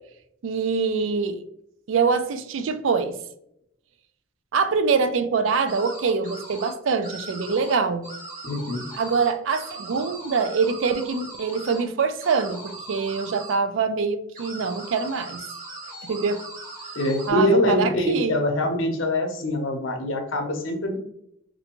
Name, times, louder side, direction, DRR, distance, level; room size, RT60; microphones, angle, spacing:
voice 1, 0.4-1.4 1.9-3.2 4.5-8.1 9.0-15.4 16.0-16.4 17.3-18.4, right 5 dB, 75° right, 10 dB, 0.4 m, -24 dB
sound 1, 5.7-6.7 7.0-7.8 8.0-11.8 12.2-13.6 14.3-17.3, right 2 dB, 40° right, 1.0 m, -39 dB
voice 2, 8.4-8.9 16.9-21.0, left 1 dB, 80° left, 4 dB, 0.7 m, -24 dB
3.3 x 2.6 x 2.9 m, 0.74 s
head